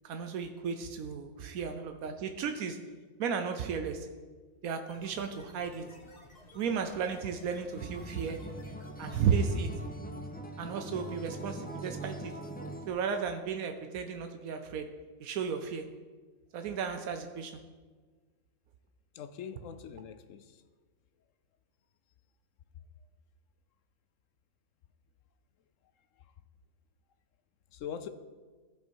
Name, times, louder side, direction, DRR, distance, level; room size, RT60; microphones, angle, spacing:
voice 1, 0.0-2.8 3.2-4.1 4.6-5.9 6.5-8.4 9.0-9.7 10.6-12.3 12.9-14.9 15.2-15.8 16.5-17.6, right 6 dB, 85° right, 6 dB, 1.1 m, -34 dB
sound 1, 4.9-10.0, left 1 dB, 30° left, 1.3 m, -55 dB
Acoustic guitar, 7.8-12.9, right 1 dB, 10° left, 0.5 m, -42 dB
voice 2, 19.1-20.6 26.2-26.3 27.7-28.1, left 8 dB, 70° left, 11 dB, 0.9 m, -42 dB
15.0 x 5.2 x 4.6 m, 1.4 s
omnidirectional pair, 1.5 m